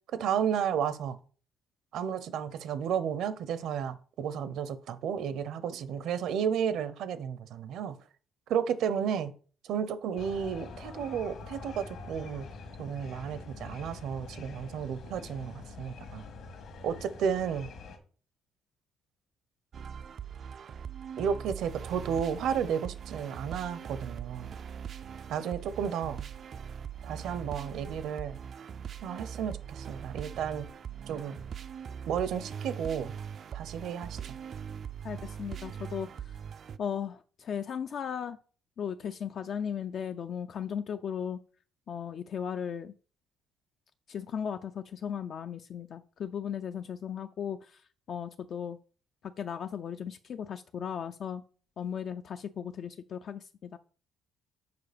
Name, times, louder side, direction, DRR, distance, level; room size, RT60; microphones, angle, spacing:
voice 1, 0.1-1.2 1.9-8.0 8.5-9.3 9.6-12.5 12.8-16.2 16.8-17.7 21.2-24.5 25.3-26.2 27.0-28.4 29.0-30.7 31.1-31.4 32.1-33.1 33.5-34.3, right 8 dB, 70° right, 0.7 m, -32 dB
sound 1, 10.2-18.0, left 3 dB, 65° left, 1.6 m, -45 dB
sound 2, 19.7-36.8, right 7 dB, 45° right, 0.3 m, -41 dB
voice 2, 35.0-36.3 36.8-38.4 38.8-41.4 41.9-42.9 44.1-47.8 48.1-48.8 49.2-51.4 51.8-53.8, left 8 dB, 45° left, 0.3 m, -36 dB
6.7 x 4.8 x 5.1 m
cardioid pair, 155°, 0 cm